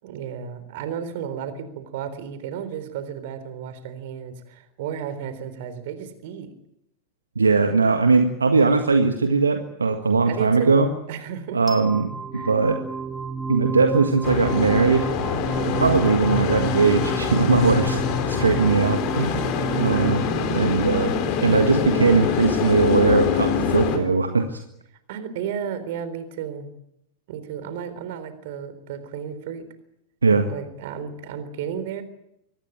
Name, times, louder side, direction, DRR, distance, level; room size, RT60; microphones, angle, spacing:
voice 1, 0.0-6.5 10.3-11.6 12.3-12.5 19.7-20.2 25.1-26.7 27.3-29.7 30.5-32.0, right 8 dB, 50° right, 12 dB, 3.8 m, -33 dB
voice 2, 7.3-10.9 11.5-12.8 13.5-15.1 15.7-19.4 19.8-24.6 30.2-30.5, right 4 dB, 75° right, 6 dB, 1.7 m, -20 dB
sound 1, 11.7-22.6, right 4 dB, 10° right, 2.1 m, -32 dB
sound 2, 14.2-24.0, left 7 dB, 40° left, 4.2 m, -25 dB
24.0 x 19.0 x 9.0 m, 0.81 s
figure-of-eight pair, 90°, 0 cm